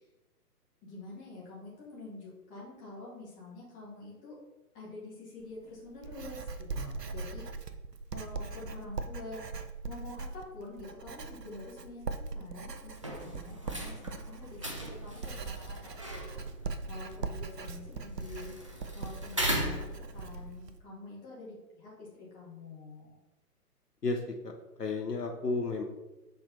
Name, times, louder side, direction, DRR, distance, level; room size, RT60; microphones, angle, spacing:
voice 1, 0.8-4.3 4.7-6.5 6.8-7.4 8.1-9.4 9.8-16.4 16.9-18.5 18.9-23.2, left 2 dB, 15° left, -5 dB, 1.8 m, -47 dB
Writing, 5.4-20.8, right 4 dB, 85° right, 0.7 m, -41 dB
voice 2, 6.7-7.1 24.0-25.8, left 3 dB, 80° left, 3 dB, 1.0 m, -34 dB
sound 1, 12.9-20.4, right 1 dB, 20° right, 0.4 m, -39 dB
6.6 x 4.2 x 4.0 m, 1.0 s
figure-of-eight pair, 125°, 47 cm